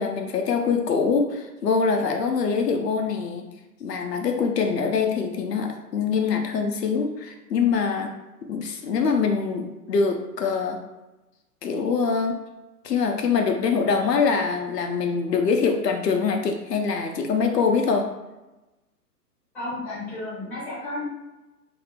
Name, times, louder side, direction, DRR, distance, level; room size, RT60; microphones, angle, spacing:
voice 1, 0.0-3.5 3.8-8.1 8.5-10.8 11.6-12.4 12.8-18.1, left 5 dB, 80° left, 3 dB, 0.6 m, -24 dB
voice 2, 19.5-21.0, left 2 dB, 5° left, -10 dB, 0.7 m, -32 dB
2.6 x 2.1 x 2.8 m, 1.1 s
figure-of-eight pair, 125°, 48 cm